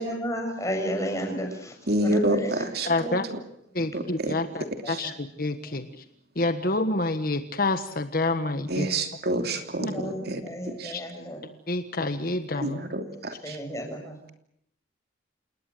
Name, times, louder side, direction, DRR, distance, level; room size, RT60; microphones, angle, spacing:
voice 1, 0.0-3.2 4.5-5.1 9.8-11.4 12.5-12.6 13.1-14.2, equal, 15° left, 4 dB, 7.0 m, -33 dB
voice 2, 1.9-2.9 3.9-4.3 4.9-5.0 8.7-10.9 12.6-13.6, right 1 dB, 55° right, 6 dB, 2.9 m, -28 dB
voice 3, 2.9-3.3 3.7-6.0 6.3-8.9 9.8-9.9 10.9-11.1 11.7-12.8, left 2 dB, 50° left, 9 dB, 1.4 m, -28 dB
29.0 x 19.5 x 7.9 m, 0.72 s
head